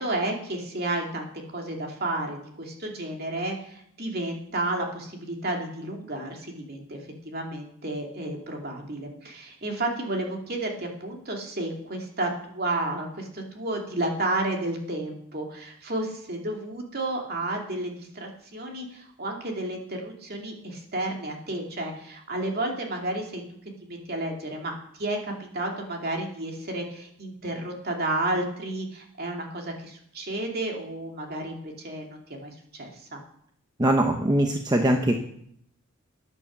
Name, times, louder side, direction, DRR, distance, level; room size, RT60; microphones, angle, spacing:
voice 1, 0.0-7.0 7.2-23.4 23.9-33.2, right 1 dB, 45° right, 1 dB, 2.7 m, -32 dB
voice 2, 33.8-35.2, right 1 dB, 20° right, 4 dB, 0.9 m, -22 dB
12.5 x 10.0 x 7.3 m, 0.71 s
head